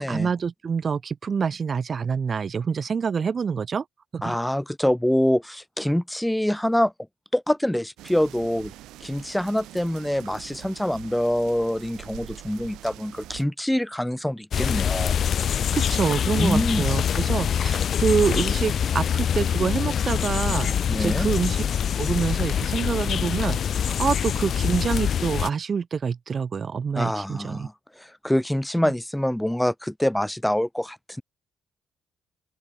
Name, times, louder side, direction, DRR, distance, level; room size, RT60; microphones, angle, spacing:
voice 1, 0.0-3.8 4.1-4.4 15.7-21.6 22.0-27.7, right 6 dB, 45° right, 0.4 m, -26 dB
voice 2, 4.2-6.9 7.3-8.7 9.0-15.1 16.3-16.9 20.9-21.3 27.0-31.2, left 1 dB, 5° left, 0.7 m, -25 dB
sound 1, 8.0-13.4, right 15 dB, 90° right, 4.6 m, -44 dB
sound 2, 14.5-25.5, left 8 dB, 60° left, 0.8 m, -24 dB
open air
cardioid pair, 90°, 0 cm